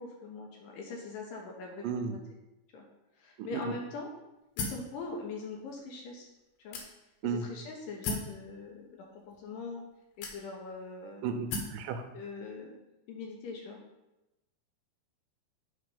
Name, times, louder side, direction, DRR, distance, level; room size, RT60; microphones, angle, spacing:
voice 1, 0.0-2.2 2.7-2.8 3.2-4.1 4.6-6.3 6.6-6.8 7.2-9.8 10.2-11.3 12.1-12.7 13.1-13.8, left 4 dB, 75° left, 0 dB, 2.4 m, -42 dB
sound 1, 4.6-4.9 5.7-5.8 6.7-7.3 8.0-8.4 9.3-9.4 10.2-10.8 11.5-11.8, left 3 dB, 90° left, 3.0 m, -36 dB
voice 2, 11.2-12.0, right 6 dB, 75° right, 6 dB, 2.1 m, -34 dB
8.9 x 3.6 x 5.3 m, 0.97 s
omnidirectional pair, 4.3 m